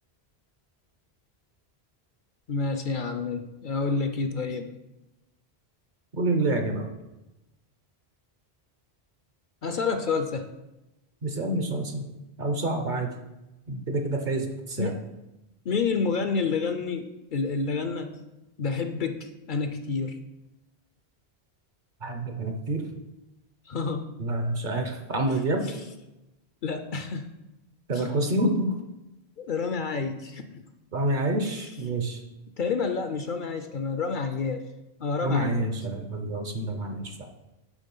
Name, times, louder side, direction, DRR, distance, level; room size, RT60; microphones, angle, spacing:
voice 1, 2.5-4.7 9.6-10.4 14.8-15.1 15.7-18.2 18.6-20.2 23.7-24.0 25.6-25.8 26.6-27.2 27.9-28.1 29.4-30.6 31.4-31.7 32.6-34.6 35.0-35.7 36.8-37.0, left 4 dB, 55° left, 8 dB, 0.7 m, -29 dB
voice 2, 6.1-6.9 11.2-12.0 12.4-13.1 13.7-14.9 22.0-22.9 24.2-25.7 27.9-28.7 30.9-32.2 35.2-37.1, right 2 dB, 50° right, 5 dB, 0.9 m, -27 dB
7.3 x 4.8 x 5.4 m, 0.98 s
omnidirectional pair, 1.1 m